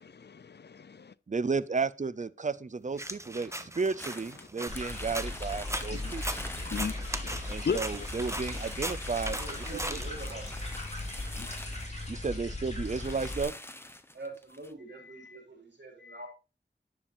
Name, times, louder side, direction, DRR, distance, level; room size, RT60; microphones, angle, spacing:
voice 1, 0.0-1.1 5.7-8.1 11.2-11.5, left 6 dB, 70° left, 0.5 m, -37 dB
voice 2, 1.3-6.2 7.5-9.4 9.9-10.0 12.1-13.5, right 4 dB, 45° right, 0.5 m, -33 dB
sound 1, 3.0-10.6, right 1 dB, 15° right, 0.9 m, -39 dB
sound 2, 4.0-12.2 12.5-12.6 12.8-14.7, left 1 dB, 15° left, 0.9 m, -45 dB
sound 3, 4.7-13.4, left 2 dB, 40° left, 2.7 m, -38 dB
voice 3, 9.4-10.7 14.1-16.3, right 2 dB, 75° right, 4.0 m, -44 dB
10.0 x 7.0 x 2.6 m
wide cardioid pair, 50°, 18 cm